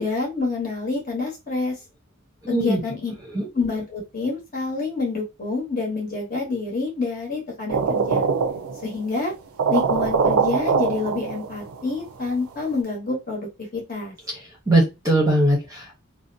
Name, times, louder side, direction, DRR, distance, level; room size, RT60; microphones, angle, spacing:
voice 1, 0.0-1.7 2.5-3.1 3.4-8.2 8.8-9.3 9.7-14.1, left 3 dB, 40° left, -1 dB, 1.1 m, -27 dB
voice 2, 2.4-2.8 3.3-3.4 14.7-16.0, right 1 dB, 15° right, -1 dB, 0.7 m, -20 dB
sound 1, 7.7-9.0 9.3-9.4 9.6-11.8, right 5 dB, 80° right, 0.4 m, -22 dB
2.5 x 2.1 x 2.6 m, 0.24 s
head